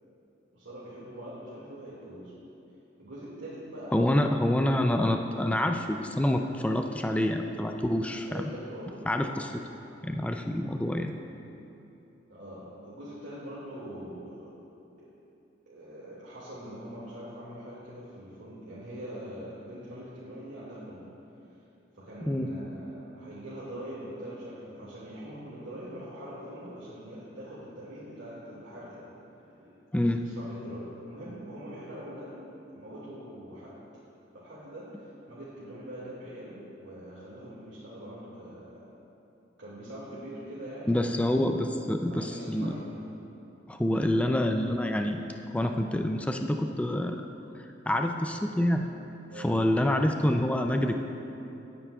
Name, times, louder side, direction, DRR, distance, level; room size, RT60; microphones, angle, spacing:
voice 1, 0.5-2.4 3.0-4.0 8.3-9.1 12.3-14.5 15.0-15.1 15.7-21.1 21.9-29.1 29.4-29.8 30.2-33.8 34.3-38.9 39.6-40.9 42.1-43.1 49.3-49.6, equal, 80° right, -9 dB, 2.1 m, -43 dB
voice 2, 3.9-8.5 9.1-9.6 10.0-11.1 22.2-22.5 29.9-30.3 40.9-42.8 43.7-45.2 45.5-47.3 47.9-48.8 49.4-51.0, left 1 dB, 5° left, 4 dB, 0.3 m, -27 dB
17.5 x 9.3 x 2.3 m, 2.9 s
head